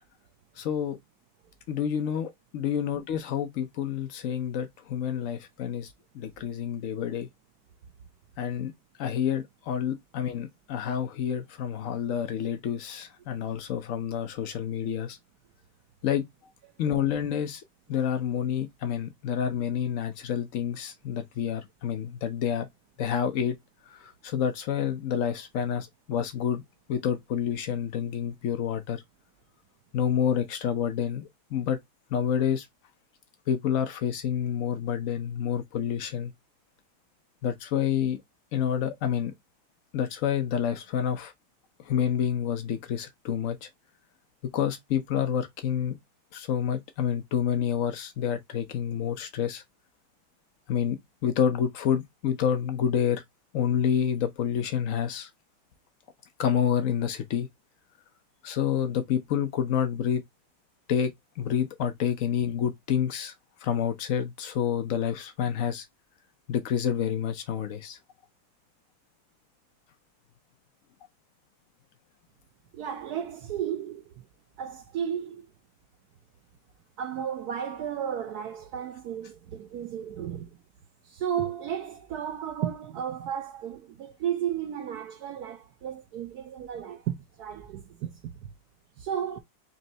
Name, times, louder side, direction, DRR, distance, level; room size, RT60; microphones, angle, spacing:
voice 1, 0.6-1.0 1.7-7.3 8.4-8.7 9.0-15.2 16.0-16.2 16.8-17.6 17.9-22.7 23.0-23.6 23.9-26.6 26.9-29.0 29.9-31.8 32.1-32.7 33.5-36.3 37.4-38.2 38.5-39.3 39.9-41.3 41.8-43.7 44.5-46.0 46.3-49.6 50.7-53.2 53.5-55.3 56.4-57.5 58.4-60.2 60.9-63.3 63.6-65.8 66.5-68.0, left 8 dB, 85° left, 0.7 m, -28 dB
voice 2, 72.7-74.2 74.6-75.5 77.0-80.5 81.0-88.5 89.0-89.4, right 9 dB, 75° right, 0.9 m, -34 dB
4.3 x 3.0 x 2.7 m
omnidirectional pair, 2.2 m